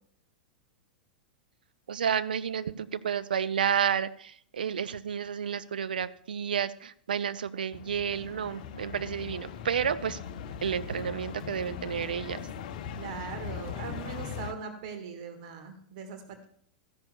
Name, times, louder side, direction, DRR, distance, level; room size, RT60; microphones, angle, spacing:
voice 1, 1.9-10.2 10.6-12.4, right 8 dB, 70° right, 14 dB, 0.5 m, -31 dB
sound 1, 7.7-14.5, left 8 dB, 55° left, 0.7 m, -40 dB
voice 2, 13.0-16.5, right 6 dB, 55° right, 6 dB, 1.4 m, -40 dB
14.0 x 10.5 x 2.2 m, 0.64 s
figure-of-eight pair, 95°, 5 cm